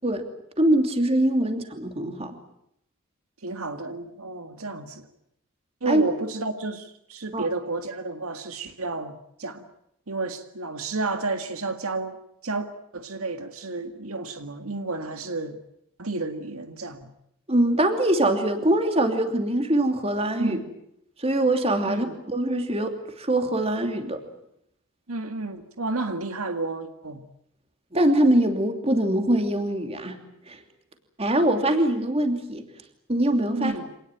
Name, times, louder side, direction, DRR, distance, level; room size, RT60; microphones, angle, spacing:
voice 1, 0.6-2.4 5.9-6.0 7.3-7.5 17.5-20.6 21.2-24.2 27.9-30.2 30.5-30.6 31.2-32.6 33.1-33.7, right 1 dB, 30° right, 2.9 m, -23 dB
voice 2, 3.4-5.1 5.8-9.7 10.1-12.2 12.4-15.6 16.0-17.1 20.4-20.6 21.9-22.2 25.1-27.3 33.5-33.9, right 3 dB, 80° right, 1.9 m, -31 dB
26.0 x 19.0 x 9.2 m
head